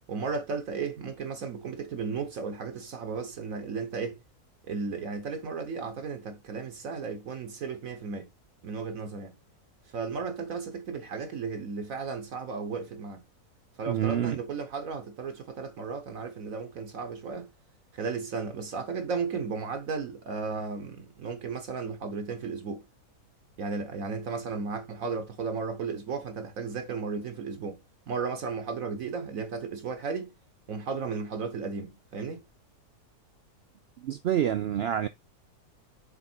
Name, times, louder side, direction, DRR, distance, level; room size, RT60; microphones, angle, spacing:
voice 1, 0.1-4.2 4.6-8.3 8.6-9.3 9.9-13.2 13.8-17.5 17.9-22.8 23.6-27.8 28.1-30.3 30.7-32.4, right 5 dB, 65° right, 1.3 m, -34 dB
voice 2, 13.9-14.4 34.0-35.1, right 10 dB, 85° right, 0.5 m, -27 dB
7.0 x 3.6 x 4.4 m
omnidirectional pair, 1.6 m